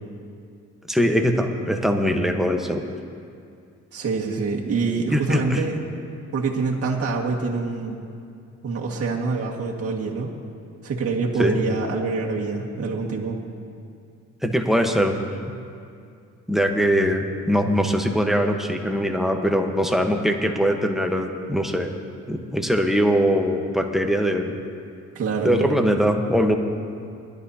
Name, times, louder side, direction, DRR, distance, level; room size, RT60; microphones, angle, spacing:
voice 1, 0.9-2.8 5.1-5.6 11.4-11.6 14.4-15.2 16.5-21.9 22.3-24.5 25.4-26.6, equal, ahead, 4 dB, 1.1 m, -21 dB
voice 2, 3.9-5.8 6.3-8.0 8.6-10.3 10.8-13.4 25.2-25.8, right 4 dB, 50° right, -2 dB, 1.9 m, -25 dB
20.5 x 12.0 x 2.8 m, 2.4 s
cardioid pair, 90°, 30 cm